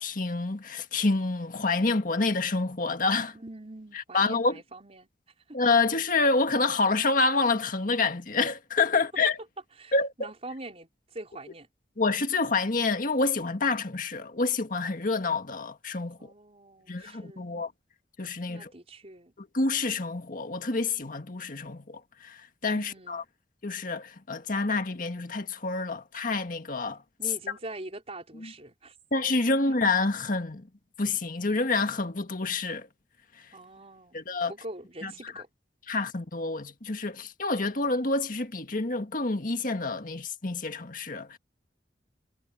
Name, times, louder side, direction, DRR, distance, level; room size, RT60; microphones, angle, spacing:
voice 1, 0.0-3.3 3.9-4.6 5.5-9.4 9.9-10.1 12.0-16.3 16.9-17.7 18.2-18.7 19.4-23.2 23.6-27.0 28.4-28.5 29.1-30.7 31.0-32.9 33.3-33.5 34.1-34.5 35.0-35.3 35.9-41.4, left 3 dB, 50° left, 1.7 m, -28 dB
voice 2, 3.3-5.1 5.5-5.6 9.8-11.7 16.2-17.5 18.5-19.3 22.8-23.2 27.2-29.0 33.5-35.5, right 2 dB, 35° right, 4.7 m, -44 dB
head